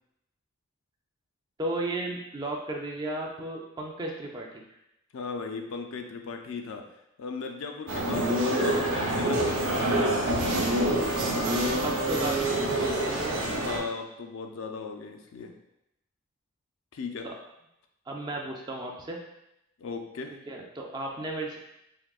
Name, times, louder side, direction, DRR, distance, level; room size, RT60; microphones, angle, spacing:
voice 1, 1.6-4.6 11.1-13.4 17.2-17.3 18.1-19.2 20.5-21.6, right 2 dB, 20° right, 0 dB, 0.3 m, -35 dB
voice 2, 5.1-6.9 7.2-10.6 13.5-15.5 16.9-17.3 19.8-20.4, left 4 dB, 70° left, 5 dB, 0.3 m, -37 dB
sound 1, 7.9-13.8, right 1 dB, 65° right, 0.6 m, -26 dB
3.6 x 2.6 x 2.3 m, 0.85 s
head